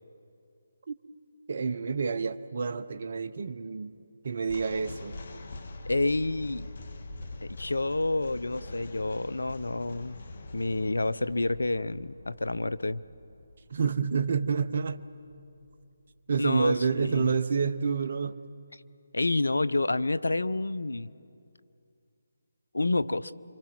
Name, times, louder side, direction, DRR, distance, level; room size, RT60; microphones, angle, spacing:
voice 1, 1.5-4.0 4.2-5.2 13.7-15.0 16.3-18.4, right 5 dB, 50° right, 0.9 m, -28 dB
sound 1, 4.4-15.7, left 2 dB, 50° left, 1.7 m, -44 dB
voice 2, 5.9-6.7 7.4-10.2 10.5-13.0 16.4-17.3 19.1-21.1 22.7-23.3, left 2 dB, 80° left, 0.7 m, -29 dB
27.5 x 25.0 x 6.1 m
figure-of-eight pair, 150°, 0 cm